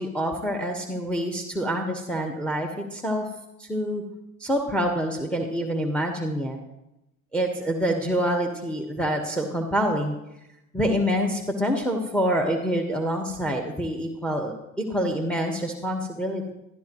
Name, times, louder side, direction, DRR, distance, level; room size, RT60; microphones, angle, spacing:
voice 1, 0.0-3.3 3.6-4.0 4.4-6.6 7.3-10.2 10.7-14.5 14.9-16.5, equal, 5° left, 3 dB, 1.5 m, -26 dB
12.5 x 12.0 x 3.1 m, 0.88 s
hypercardioid pair, 65°, 41 cm